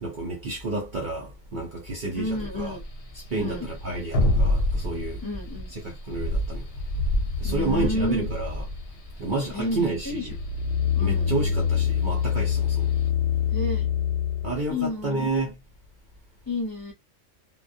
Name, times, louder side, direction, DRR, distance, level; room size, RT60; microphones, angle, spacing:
voice 1, 0.0-2.8 3.3-5.2 5.7-6.6 7.4-8.6 9.2-10.4 11.0-12.9 14.4-15.5, right 2 dB, 50° right, 0.7 m, -30 dB
voice 2, 2.1-2.8 3.3-3.7 5.2-5.7 7.4-8.3 9.5-10.3 11.0-11.3 13.5-13.9 14.7-15.3 16.5-16.9, left 2 dB, 20° left, 0.7 m, -30 dB
sound 1, 2.3-13.1, left 1 dB, 55° left, 0.8 m, -28 dB
sound 2, 10.3-14.7 15.1-15.2, left 8 dB, 80° left, 1.0 m, -25 dB
2.3 x 2.1 x 2.6 m
omnidirectional pair, 1.3 m